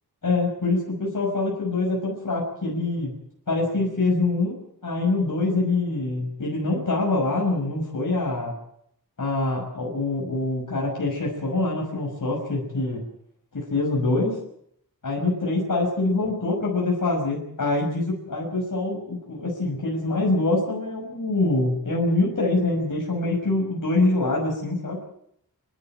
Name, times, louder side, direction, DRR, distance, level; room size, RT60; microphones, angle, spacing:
voice 1, 0.2-3.1 3.5-4.6 4.8-8.5 9.2-13.0 13.5-14.4 15.0-25.0, left 2 dB, 60° left, -3 dB, 6.2 m, -25 dB
29.0 x 12.0 x 8.9 m, 0.72 s
wide cardioid pair, 95°, 36 cm